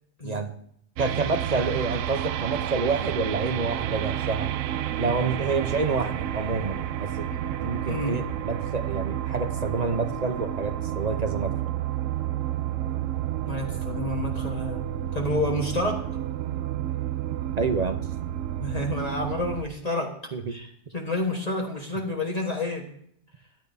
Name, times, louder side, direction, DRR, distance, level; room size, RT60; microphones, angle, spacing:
voice 1, 1.0-4.5 5.0-7.3 7.6-11.5 17.6-18.0 20.3-20.5, right 4 dB, 40° right, 7 dB, 0.7 m, -28 dB
sound 1, 1.0-19.6, right 11 dB, 85° right, 1.0 m, -30 dB
voice 2, 7.9-8.2 13.5-14.8 15.1-16.0 18.6-20.1 20.5-22.9, left 2 dB, 30° left, 0 dB, 1.4 m, -29 dB
13.5 x 10.5 x 2.7 m, 0.68 s
omnidirectional pair, 1.3 m